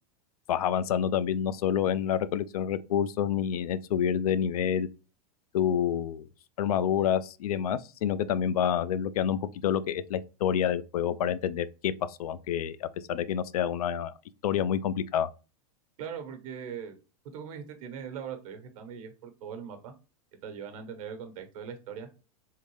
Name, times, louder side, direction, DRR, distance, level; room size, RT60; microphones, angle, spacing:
voice 1, 0.5-4.9 5.5-6.3 6.6-14.1 14.4-15.3, left 9 dB, 90° left, 0.4 m, -28 dB
voice 2, 16.0-16.9 17.3-19.9 20.4-22.1, right 7 dB, 70° right, 1.1 m, -40 dB
3.7 x 2.6 x 3.1 m
hypercardioid pair, 125°, 19 cm